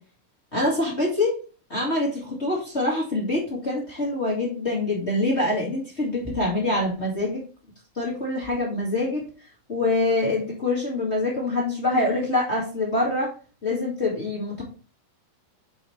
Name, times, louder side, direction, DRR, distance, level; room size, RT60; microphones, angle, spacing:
voice 1, 0.5-1.3 1.7-7.4 7.9-9.2 9.7-13.3 13.6-14.6, left 2 dB, 30° left, -4 dB, 1.2 m, -25 dB
7.8 x 4.9 x 3.1 m, 0.36 s
omnidirectional pair, 4.3 m